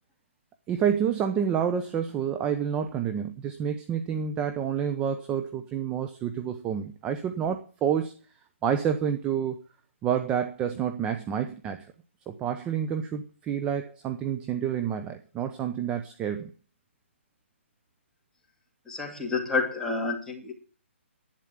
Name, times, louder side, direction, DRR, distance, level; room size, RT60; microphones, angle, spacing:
voice 1, 0.7-8.1 8.6-9.6 10.0-11.9 12.3-16.5, right 8 dB, 15° right, 7 dB, 0.9 m, -28 dB
voice 2, 18.9-20.5, left 4 dB, 5° left, -1 dB, 2.6 m, -29 dB
11.5 x 9.2 x 9.0 m, 0.38 s
hypercardioid pair, 160°, 7 cm